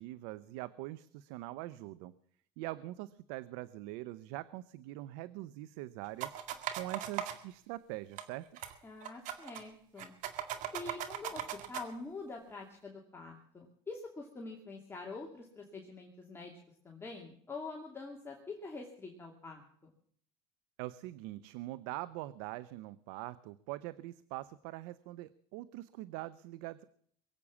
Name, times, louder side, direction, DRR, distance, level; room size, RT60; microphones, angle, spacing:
voice 1, 0.0-2.1 2.6-6.3 6.7-8.5 20.8-26.8, right 17 dB, 80° right, 17 dB, 0.6 m, -43 dB
sound 1, 6.2-7.4 8.2-8.3 8.6-8.7 9.0-9.6 10.0-11.9, right 11 dB, 65° right, 2.0 m, -38 dB
voice 2, 8.8-10.1 10.7-16.5 16.8-19.9, left 3 dB, 15° left, 0 dB, 2.5 m, -45 dB
22.5 x 8.4 x 7.2 m, 0.62 s
supercardioid pair, 110°, 14 cm